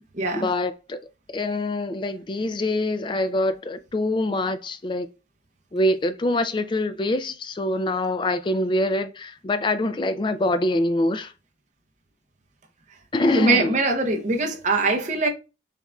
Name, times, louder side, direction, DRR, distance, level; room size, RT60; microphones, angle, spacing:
voice 1, 0.3-1.0 1.3-5.1 5.7-11.3 13.1-13.8, left 1 dB, 25° left, 0.3 m, -24 dB
voice 2, 13.3-15.3, right 3 dB, 40° right, 0.7 m, -22 dB
7.0 x 2.5 x 2.2 m
head